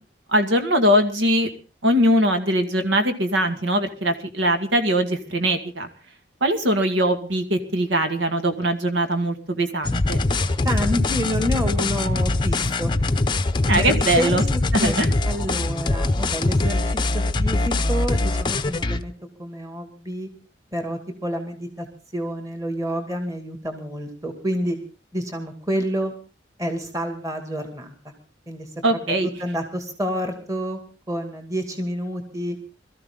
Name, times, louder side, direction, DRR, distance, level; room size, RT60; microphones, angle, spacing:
voice 1, 0.3-1.5 1.8-5.9 6.4-10.2 13.7-14.4 14.7-15.1 28.8-29.3, right 1 dB, 80° right, 7 dB, 2.2 m, -21 dB
sound 1, 9.8-19.0, left 2 dB, 25° left, 0.7 m, -22 dB
voice 2, 10.6-12.9 13.7-16.8 17.1-19.1 19.4-20.3 20.7-21.9 22.1-24.8 25.1-26.1 26.6-27.9 28.5-30.8 31.1-32.6, equal, 15° right, 5 dB, 2.3 m, -28 dB
22.5 x 13.5 x 3.8 m, 0.34 s
head